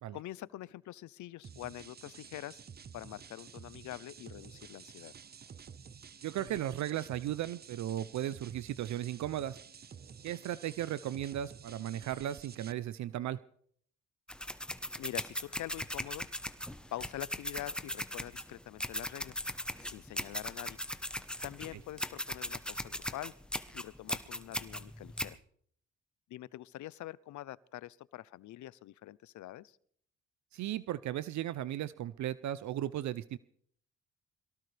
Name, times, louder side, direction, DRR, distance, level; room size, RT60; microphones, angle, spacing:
voice 1, 0.1-2.6 2.9-5.1 15.0-16.3 16.9-19.4 19.8-20.8 21.4-23.3 23.7-25.4 26.3-29.8, left 15 dB, 70° left, 21 dB, 0.6 m, -45 dB
sound 1, 1.4-12.7, right 6 dB, 35° right, 0.7 m, -51 dB
voice 2, 6.2-9.6 10.2-13.4 30.5-33.4, right 12 dB, 70° right, 17 dB, 0.6 m, -36 dB
sound 2, 14.3-25.3, left 1 dB, 5° left, 1.0 m, -39 dB
23.0 x 17.5 x 3.4 m, 0.63 s
cardioid pair, 90°, 30 cm